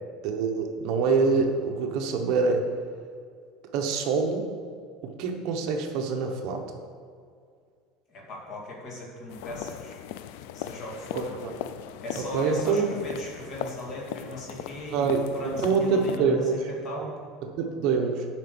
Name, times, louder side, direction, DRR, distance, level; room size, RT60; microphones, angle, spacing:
voice 1, 0.2-2.7 3.7-4.5 5.0-6.7 11.1-11.5 12.2-12.9 14.9-16.7 17.4-18.3, right 5 dB, 55° right, 3 dB, 1.0 m, -26 dB
voice 2, 8.1-10.1 10.5-11.3 12.0-16.6 16.8-17.1, left 1 dB, 40° left, -2 dB, 2.1 m, -38 dB
sound 1, 9.3-16.2, left 11 dB, 70° left, 0.4 m, -39 dB
7.7 x 5.9 x 6.9 m, 2.1 s
cardioid pair, 165°, 0 cm